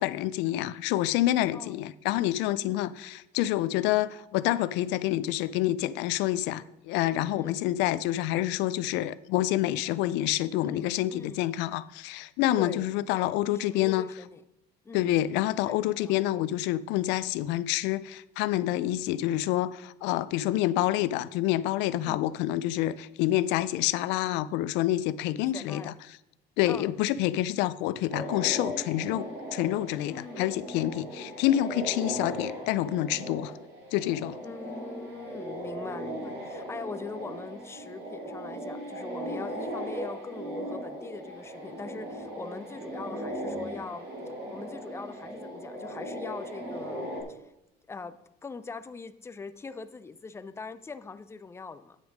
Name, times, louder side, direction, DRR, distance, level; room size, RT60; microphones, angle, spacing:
voice 1, 0.0-14.1 14.9-25.9 26.6-33.5 33.9-34.4, left 14 dB, 75° left, 0.4 m, -27 dB
voice 2, 10.6-11.4 12.6-14.4 14.8-15.1 15.7-16.2 22.0-22.2 25.5-25.9 26.7-26.9 30.1-30.5 34.4-44.1 44.5-47.5 47.9-52.0, left 4 dB, 15° left, 0.5 m, -42 dB
sound 1, 28.1-47.2, equal, 65° right, 2.5 m, -38 dB
9.3 x 6.0 x 5.1 m
cardioid pair, 130°, 18 cm